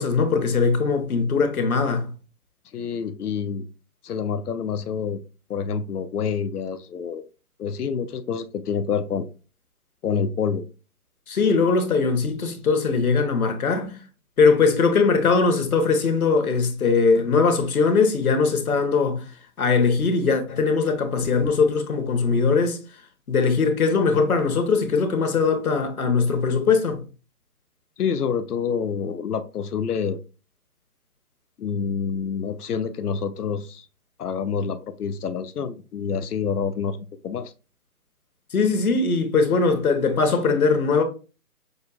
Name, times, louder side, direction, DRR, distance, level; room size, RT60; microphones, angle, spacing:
voice 1, 0.0-2.1 11.3-13.9 14.4-19.2 19.6-22.8 23.3-27.0 38.5-41.0, left 4 dB, 70° left, 1.3 m, -20 dB
voice 2, 2.7-3.7 4.0-5.2 5.5-7.3 7.6-9.3 10.0-10.7 28.0-30.2 31.6-33.9 34.2-37.5, left 6 dB, 90° left, 0.6 m, -27 dB
6.4 x 2.3 x 2.5 m
hypercardioid pair, 150°, 44 cm